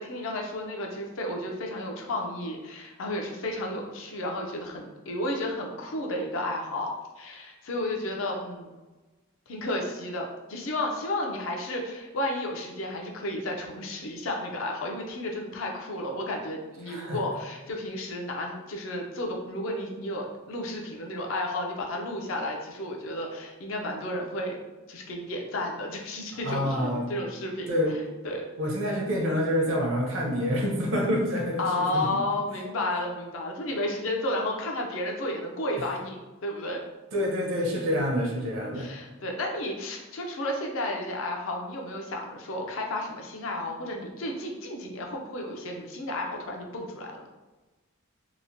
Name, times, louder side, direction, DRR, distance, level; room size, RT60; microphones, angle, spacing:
voice 1, 0.0-8.7 9.5-24.6 24.9-27.7 28.2-28.5 31.6-36.8 38.7-47.2, left 1 dB, 65° left, 1 dB, 0.5 m, -32 dB
voice 2, 16.9-17.2 26.4-27.1 27.7-28.0 28.6-32.1 35.7-35.8 37.1-38.9, equal, 60° right, -1 dB, 0.6 m, -27 dB
2.9 x 2.0 x 2.6 m, 1.2 s
head